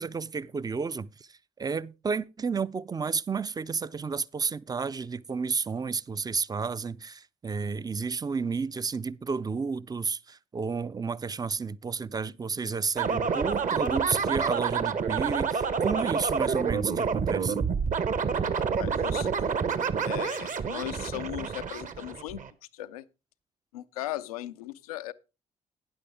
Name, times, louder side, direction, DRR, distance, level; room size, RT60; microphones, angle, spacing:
voice 1, 0.0-17.7, right 5 dB, 20° right, 0.5 m, -32 dB
sound 1, 13.0-22.5, right 6 dB, 45° right, 1.1 m, -28 dB
voice 2, 18.6-19.5 20.0-22.4 22.7-23.0 23.7-25.1, left 14 dB, 80° left, 0.5 m, -37 dB
12.5 x 9.7 x 3.5 m
figure-of-eight pair, 45°, 18 cm